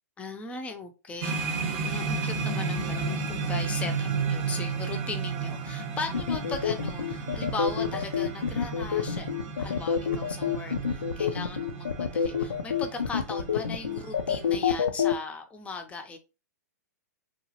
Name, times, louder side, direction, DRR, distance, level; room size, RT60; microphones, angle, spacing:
voice 1, 0.2-9.3 9.6-16.2, left 4 dB, 15° left, 6 dB, 0.5 m, -38 dB
sound 1, 1.2-14.6, right 4 dB, 40° right, 0.7 m, -33 dB
sound 2, 6.1-15.1, left 7 dB, 85° left, 0.4 m, -27 dB
2.9 x 2.4 x 2.7 m, 0.29 s
hypercardioid pair, 120°, 9 cm